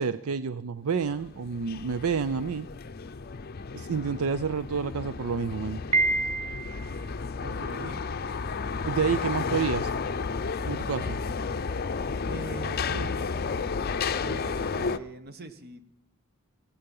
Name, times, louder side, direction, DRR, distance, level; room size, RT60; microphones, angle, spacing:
voice 1, 0.0-2.7 3.7-5.8 8.8-9.9 10.6-11.2, right 6 dB, 75° right, 14 dB, 0.5 m, -29 dB
sound 1, 1.1-15.0, left 5 dB, 45° left, 0.6 m, -32 dB
Piano, 5.9-7.0, right 2 dB, 30° right, 0.8 m, -26 dB
voice 2, 7.4-8.0 12.2-13.3 14.2-15.8, right 2 dB, 45° right, 11 dB, 1.2 m, -41 dB
16.0 x 15.5 x 5.5 m, 0.70 s
head